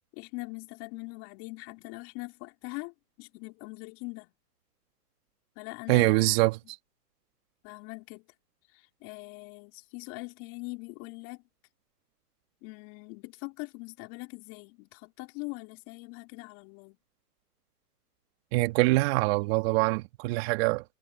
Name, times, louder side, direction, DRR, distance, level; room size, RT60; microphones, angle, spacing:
voice 1, 0.1-4.3 5.6-6.4 7.6-8.3 8.7-11.4 12.6-17.0, left 28 dB, 35° left, 3.8 m, -42 dB
voice 2, 5.9-6.6 18.5-20.8, right 23 dB, 40° right, 2.8 m, -24 dB
hypercardioid pair, 135°, 48 cm